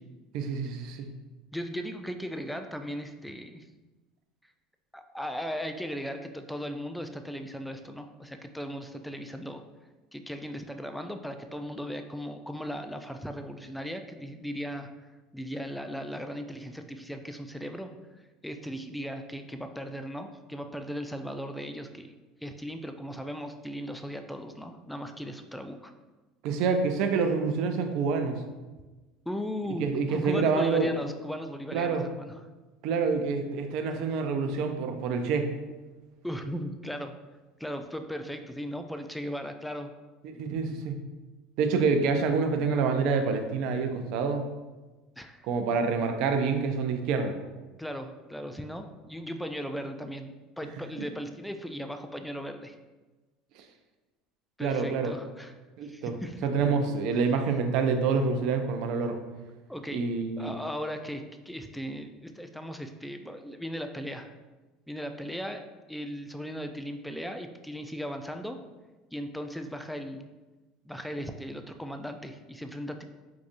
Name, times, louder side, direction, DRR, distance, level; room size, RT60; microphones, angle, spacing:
voice 1, 0.3-1.0 26.4-28.4 29.8-30.9 31.7-32.0 32.8-35.5 40.2-41.0 41.6-44.4 45.4-47.4 53.6-53.7 54.6-55.1 55.8-56.1 56.4-59.2 59.9-60.5, right 5 dB, 65° right, 6 dB, 0.4 m, -27 dB
voice 2, 1.5-3.6 4.9-9.6 10.1-14.9 15.3-17.9 18.4-22.1 22.4-25.9 29.3-32.4 36.2-37.1 37.6-39.9 45.2-45.5 47.8-50.3 50.6-52.8 54.6-55.5 55.8-56.5 59.7-60.0 60.4-64.3 64.9-68.6 69.1-70.3 70.8-73.0, equal, 5° left, 6 dB, 0.3 m, -37 dB
4.7 x 2.5 x 2.5 m, 1.2 s
supercardioid pair, 95°, 0 cm